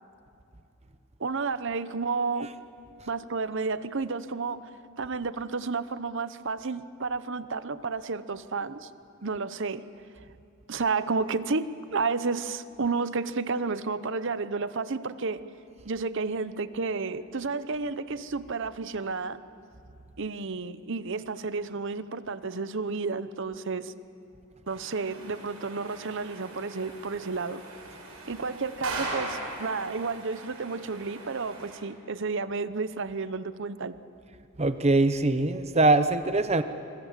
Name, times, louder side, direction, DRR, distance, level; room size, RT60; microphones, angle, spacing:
voice 1, 1.2-2.5 3.1-4.7 5.0-8.9 9.2-9.8 10.7-15.4 15.8-19.4 20.2-23.9 24.7-27.6 28.3-34.0, right 4 dB, 60° right, 14 dB, 0.8 m, -31 dB
sound 1, 24.7-31.8, right 2 dB, 85° right, 5.6 m, -40 dB
voice 2, 34.6-36.6, right 2 dB, 30° right, 10 dB, 0.9 m, -22 dB
25.0 x 24.0 x 7.5 m, 2.6 s
head